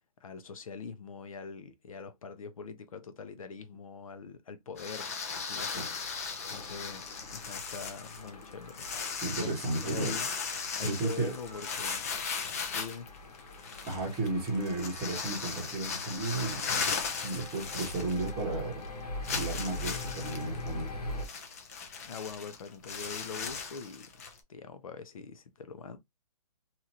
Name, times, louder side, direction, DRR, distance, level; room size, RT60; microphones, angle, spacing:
voice 1, 0.2-5.2 5.5-5.8 6.5-7.0 7.3-8.9 9.4-10.3 10.7-12.1 12.6-13.1 22.0-24.1 24.5-26.0, left 5 dB, 60° left, 0.6 m, -43 dB
sound 1, 4.8-18.5 18.8-18.9 19.2-24.4, left 5 dB, 25° left, 0.4 m, -37 dB
sound 2, 5.5-21.3, left 1 dB, 85° left, 1.1 m, -43 dB
voice 2, 9.1-10.2 10.8-11.4 13.9-16.8 17.2-18.8 19.3-20.9, right 2 dB, 15° right, 0.9 m, -33 dB
2.9 x 2.5 x 2.7 m
hypercardioid pair, 160°, 20 cm